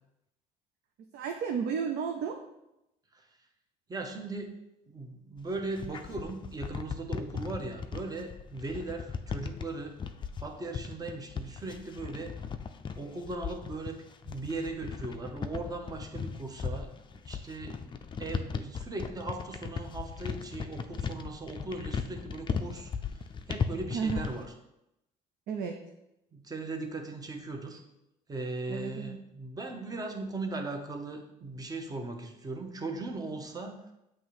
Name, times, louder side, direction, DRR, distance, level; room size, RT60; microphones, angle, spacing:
voice 1, 1.1-2.4 23.9-24.3 25.5-25.8 28.7-29.2, right 6 dB, 75° right, 4 dB, 0.6 m, -32 dB
voice 2, 3.9-4.6 4.9-10.0 10.4-12.4 12.9-17.8 18.2-22.9 23.5-24.4 26.3-27.8 28.3-33.9, right 2 dB, 20° right, 4 dB, 0.8 m, -38 dB
sound 1, 5.4-24.5, left 6 dB, 30° left, 0.4 m, -37 dB
7.3 x 3.0 x 4.7 m, 0.89 s
cardioid pair, 110°, 17 cm